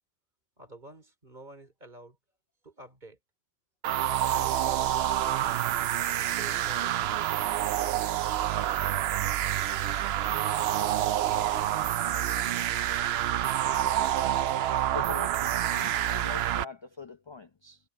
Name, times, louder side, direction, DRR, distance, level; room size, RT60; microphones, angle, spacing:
voice 1, 0.6-2.2 2.6-3.2 4.2-5.5 6.3-7.1 9.5-11.8, right 1 dB, 35° right, 3.7 m, -49 dB
sound 1, 3.8-16.6, right 12 dB, 65° right, 0.7 m, -28 dB
voice 2, 14.9-17.8, left 5 dB, 50° left, 0.3 m, -43 dB
omnidirectional pair, 1.4 m